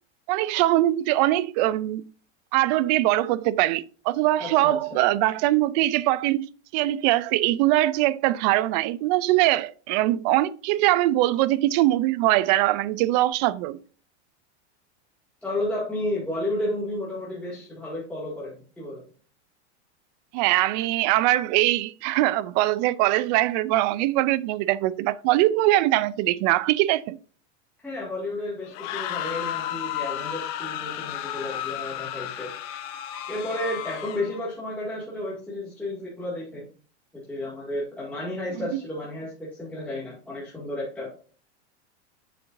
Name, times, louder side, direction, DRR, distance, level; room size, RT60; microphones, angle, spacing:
voice 1, 0.3-2.0 2.5-6.5 6.7-13.8 20.3-27.2, right 16 dB, 40° right, 0.4 m, -22 dB
voice 2, 4.4-5.0 15.4-19.0 27.8-32.5 33.3-36.7 37.1-41.1, left 1 dB, 5° left, 2.1 m, -32 dB
sound 1, 28.6-34.4, left 11 dB, 45° left, 1.1 m, -33 dB
7.7 x 6.3 x 2.6 m
supercardioid pair, 145°, 35 cm